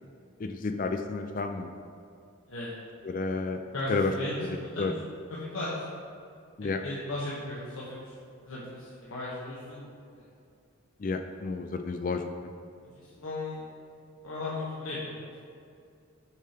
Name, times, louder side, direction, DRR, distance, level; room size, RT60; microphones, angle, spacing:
voice 1, 0.4-1.7 3.0-3.6 3.9-4.1 4.4-4.9 6.6-6.8 11.0-12.2, left 3 dB, 40° left, 6 dB, 0.3 m, -31 dB
voice 2, 3.5-4.9 5.3-5.8 6.8-8.0 8.4-9.9 12.8-13.7 14.2-15.4, left 2 dB, 80° left, -7 dB, 1.1 m, -36 dB
7.2 x 5.1 x 4.3 m, 2.4 s
head